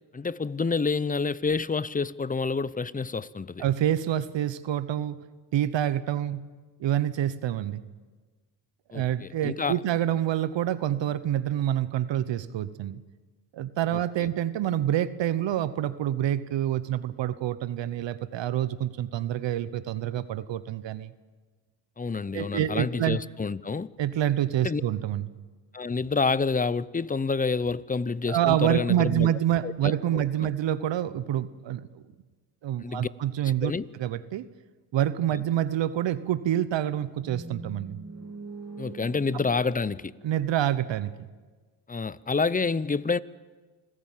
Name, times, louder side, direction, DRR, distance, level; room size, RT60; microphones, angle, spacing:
voice 1, 0.1-3.6 8.9-9.8 22.0-23.9 24.6-24.8 25.7-29.3 29.6-30.5 32.8-33.1 33.6-33.8 38.8-40.1 41.9-43.2, left 4 dB, 20° left, 0.7 m, -28 dB
voice 2, 3.6-5.2 5.5-6.4 6.8-7.8 8.9-13.0 13.5-21.1 22.3-23.2 24.0-25.3 28.3-32.0 32.6-34.5 34.9-38.0 40.2-41.1, right 11 dB, 65° right, 0.9 m, -27 dB
sound 1, 36.9-41.0, right 3 dB, 30° right, 3.6 m, -43 dB
26.0 x 15.0 x 7.4 m
supercardioid pair, 65°, 48 cm